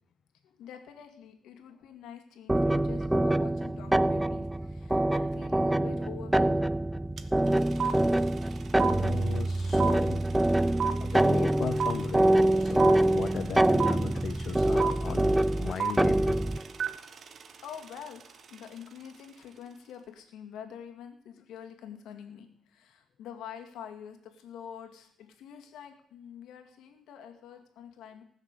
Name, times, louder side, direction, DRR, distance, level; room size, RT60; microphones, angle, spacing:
voice 1, 0.4-6.7 16.8-17.1 17.4-28.2, left 8 dB, 85° left, 5 dB, 2.1 m, -46 dB
sound 1, 2.5-16.6, right 1 dB, 10° right, 0.4 m, -25 dB
sound 2, 7.2-7.3 7.5-18.6, right 7 dB, 50° right, 1.0 m, -33 dB
voice 2, 8.9-10.2 10.5-16.4, left 8 dB, 60° left, 9 dB, 0.7 m, -38 dB
19.0 x 6.6 x 6.7 m, 0.66 s
cardioid pair, 90°, 0 cm